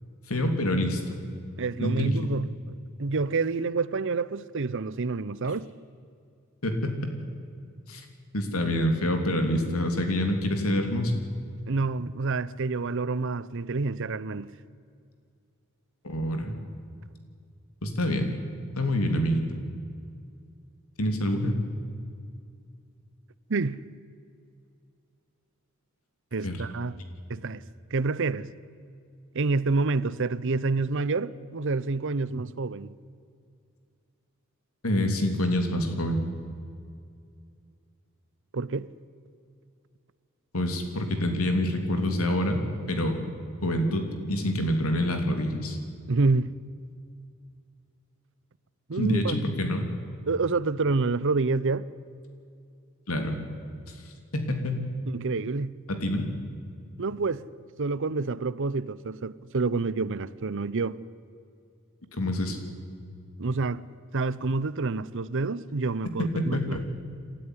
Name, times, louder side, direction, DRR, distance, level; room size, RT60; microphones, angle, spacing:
voice 1, 0.3-1.2 1.8-2.2 6.6-7.0 7.9-8.0 8.3-11.1 16.0-16.5 17.8-18.3 18.7-19.4 21.0-21.6 26.4-26.6 34.8-36.2 40.5-43.2 43.6-45.8 49.0-49.9 53.1-53.4 54.3-54.8 55.9-56.3 62.2-62.6 66.3-66.8, left 1 dB, 90° left, 3.3 m, -26 dB
voice 2, 1.6-2.6 3.0-5.7 11.7-14.5 23.5-23.8 26.3-27.0 27.3-27.6 27.9-28.5 29.3-32.9 38.5-38.9 46.1-46.5 48.9-49.4 50.3-51.9 55.1-55.7 57.0-57.4 57.8-61.0 63.4-63.9 64.1-66.8, right 3 dB, 60° right, 0.7 m, -28 dB
27.5 x 13.0 x 9.9 m
head